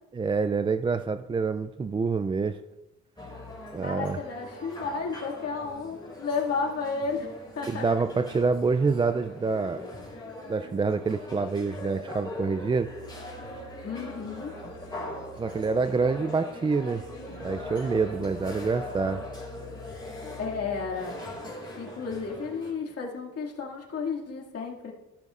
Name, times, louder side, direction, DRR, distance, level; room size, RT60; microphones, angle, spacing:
voice 1, 0.1-2.6 3.7-4.2 7.7-9.9 10.5-12.9 15.4-17.0 17.4-19.2, right 4 dB, 20° right, 9 dB, 0.3 m, -27 dB
sound 1, 3.2-22.7, left 1 dB, 15° left, 4.0 m, -41 dB
voice 2, 3.8-7.3 7.6-7.8 13.8-14.5 20.4-21.1 21.8-24.9, left 5 dB, 55° left, -2 dB, 2.2 m, -32 dB
13.5 x 12.5 x 2.5 m, 1.0 s
cardioid pair, 90°, 30 cm